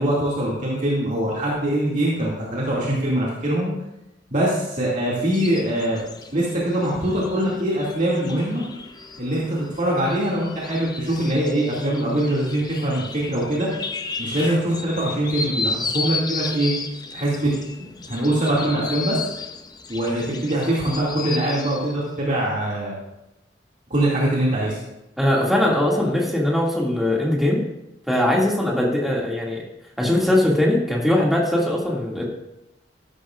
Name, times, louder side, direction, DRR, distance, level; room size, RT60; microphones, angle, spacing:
voice 1, 0.0-3.7 4.3-6.0 6.3-8.6 9.2-13.7 14.2-16.7 17.1-17.5 17.8-19.2 19.9-22.9 23.9-24.8, right 1 dB, 40° right, -6 dB, 2.4 m, -23 dB
sound 1, 5.3-21.9, left 4 dB, 20° left, 0.6 m, -34 dB
voice 2, 25.2-27.6 28.1-29.6 30.0-32.2, left 1 dB, ahead, -4 dB, 2.3 m, -20 dB
13.5 x 12.0 x 2.5 m, 0.91 s
head